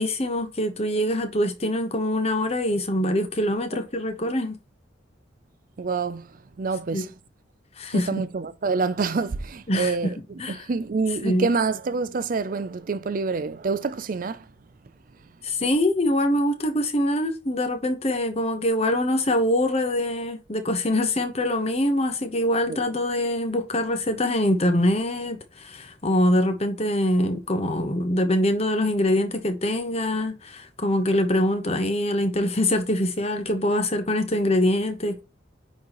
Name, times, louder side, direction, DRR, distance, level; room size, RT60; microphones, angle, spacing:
voice 1, 0.0-4.6 6.9-7.0 7.8-8.1 9.7-10.1 10.4-10.7 11.2-11.5 15.4-35.2, left 1 dB, 35° left, 1.1 m, -24 dB
voice 2, 5.8-6.3 6.6-7.1 7.9-10.2 10.5-14.4 22.7-22.8, right 4 dB, 45° right, 0.4 m, -27 dB
9.5 x 4.1 x 3.0 m
head